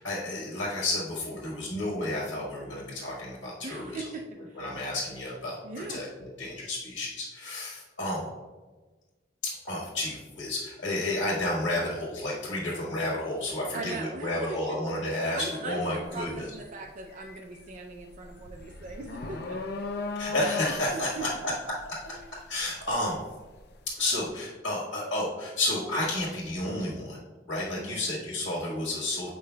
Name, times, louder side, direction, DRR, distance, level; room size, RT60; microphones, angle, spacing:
voice 1, 0.0-4.0 4.6-8.3 9.4-16.5 20.1-22.2 22.5-23.2 24.0-27.2 27.5-29.3, left 1 dB, 85° left, -5 dB, 1.5 m, -31 dB
voice 2, 3.6-4.8 5.6-6.1 13.7-14.8 15.3-19.6 20.1-20.3 20.9-21.4 22.1-22.3 27.8-28.0, right 3 dB, 45° right, 1 dB, 0.4 m, -40 dB
sound 1, 16.0-16.3 16.7-23.7, left 3 dB, 60° left, 0.5 m, -37 dB
8.2 x 5.2 x 2.2 m, 1.3 s
head